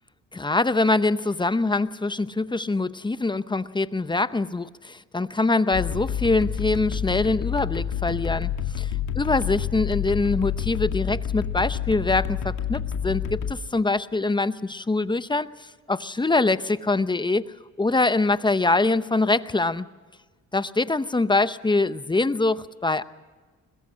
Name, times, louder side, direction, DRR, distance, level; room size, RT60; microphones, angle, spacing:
voice 1, 0.3-8.5 8.8-19.9 20.5-23.0, left 3 dB, 15° left, 14 dB, 0.7 m, -24 dB
sound 1, 5.7-13.5, left 9 dB, 75° left, 2.2 m, -28 dB
22.0 x 21.5 x 6.2 m, 1.4 s
cardioid pair, 90°, 30 cm